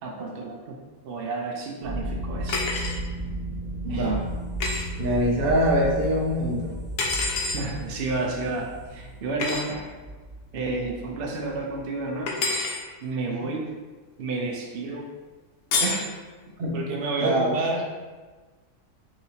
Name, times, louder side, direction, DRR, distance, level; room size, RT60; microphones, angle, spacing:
voice 1, 0.0-0.8 1.0-2.7 3.9-4.1 7.5-9.9 10.5-12.4 13.0-13.7 14.2-15.1 15.8-16.0 16.7-17.9, right 3 dB, 85° right, 0 dB, 0.5 m, -30 dB
sound 1, 1.8-11.9, right 1 dB, 10° left, 1.1 m, -36 dB
sound 2, 2.5-3.0 4.6-4.8 7.0-7.6 9.4-9.6 12.3-12.8 15.7-16.1, left 3 dB, 90° left, 1.2 m, -27 dB
voice 2, 3.8-4.3 5.0-6.7 13.4-13.5 16.6-16.8 17.2-17.5, equal, 55° right, -1 dB, 0.7 m, -24 dB
sound 3, 4.0-9.7, left 2 dB, 35° left, 0.9 m, -39 dB
5.0 x 2.8 x 2.8 m, 1.3 s
omnidirectional pair, 1.6 m